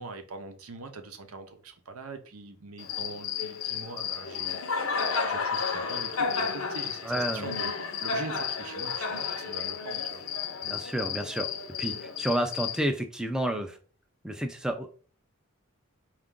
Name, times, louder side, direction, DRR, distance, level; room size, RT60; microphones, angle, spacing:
voice 1, 0.0-10.2, right 3 dB, 90° right, 0.7 m, -43 dB
Cricket, 2.8-12.8, left 6 dB, 75° left, 0.7 m, -32 dB
voice 2, 7.0-7.4 10.7-11.5 11.8-13.8 14.2-14.9, right 1 dB, 5° right, 0.3 m, -30 dB
4.4 x 2.4 x 3.6 m
head